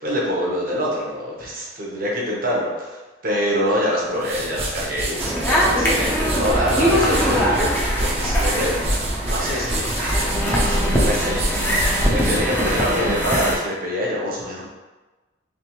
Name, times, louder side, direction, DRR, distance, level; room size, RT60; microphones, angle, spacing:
voice 1, 0.0-7.7 8.0-14.7, equal, 50° right, -4 dB, 0.9 m, -25 dB
sound 1, 4.0-13.4, right 1 dB, 35° right, 0.6 m, -27 dB
sound 2, 5.2-13.6, equal, 10° left, 0.6 m, -22 dB
3.4 x 3.2 x 2.9 m, 1.2 s
head